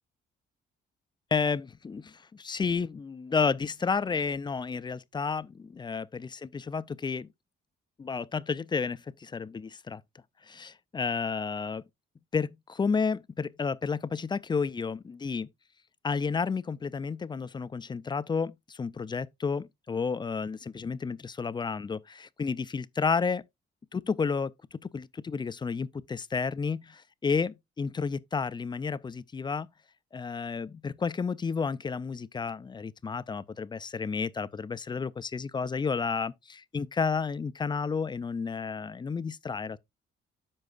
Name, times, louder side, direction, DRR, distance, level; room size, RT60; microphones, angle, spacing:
voice 1, 1.3-7.3 8.0-10.0 10.5-11.8 12.3-15.5 16.0-23.4 23.9-29.7 30.1-39.8, left 5 dB, 25° left, 0.4 m, -31 dB
13.0 x 4.7 x 2.4 m
cardioid pair, 90°, 20 cm